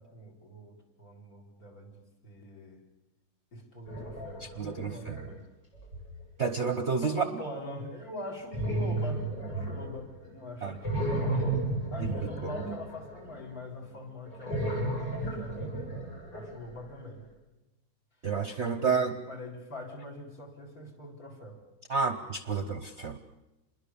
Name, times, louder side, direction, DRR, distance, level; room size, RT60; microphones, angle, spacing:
voice 1, 0.0-2.8 3.5-5.4 7.0-11.6 11.9-15.9 16.3-17.3 18.2-18.3 18.7-21.6, left 1 dB, 50° left, 4 dB, 4.5 m, -43 dB
sound 1, 3.9-5.2 5.8-6.2 8.5-10.3 10.6-13.5 14.3-16.8, right 2 dB, 65° left, 8.6 m, -33 dB
voice 2, 4.4-5.2 6.4-7.2 10.6-10.7 12.0-12.1 18.2-19.1 21.9-23.2, right 5 dB, 45° right, 9 dB, 1.0 m, -30 dB
27.5 x 21.5 x 7.1 m, 1.0 s
omnidirectional pair, 2.1 m